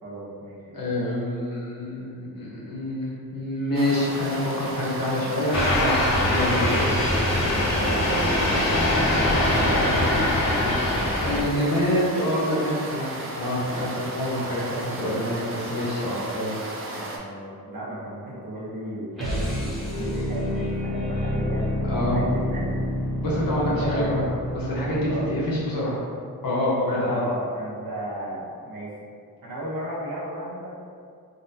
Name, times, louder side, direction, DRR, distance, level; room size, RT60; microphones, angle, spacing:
voice 1, 0.0-0.8 8.0-10.1 16.9-22.8 23.7-24.1 25.1-25.3 26.9-29.0 29.4-30.7, right 1 dB, 70° right, -7 dB, 0.9 m, -34 dB
voice 2, 0.7-6.0 6.3-6.9 11.2-16.6 21.9-22.2 23.2-24.2 24.5-25.9 26.4-27.2, left 1 dB, 75° left, -6 dB, 1.0 m, -26 dB
sound 1, 3.7-17.2, right 2 dB, 40° right, 0.4 m, -35 dB
sound 2, 5.5-11.4, left 1 dB, 50° left, 0.6 m, -22 dB
sound 3, 19.2-25.6, left 1 dB, ahead, 0.7 m, -28 dB
3.8 x 2.1 x 2.7 m, 2.2 s
wide cardioid pair, 170°, 35 cm